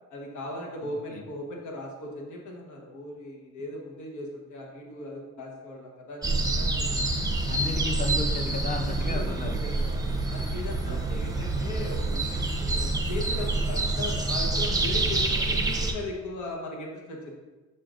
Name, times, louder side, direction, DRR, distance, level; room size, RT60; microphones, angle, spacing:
voice 1, 0.1-7.0 8.9-10.0 10.3-17.4, left 1 dB, 75° left, -1 dB, 1.3 m, -38 dB
sound 1, 6.2-15.9, right 2 dB, 10° right, 0.7 m, -27 dB
voice 2, 7.5-9.6 10.9-11.2, left 3 dB, 25° left, 2 dB, 0.9 m, -33 dB
6.7 x 5.7 x 2.5 m, 1.2 s
cardioid pair, 90°, 30 cm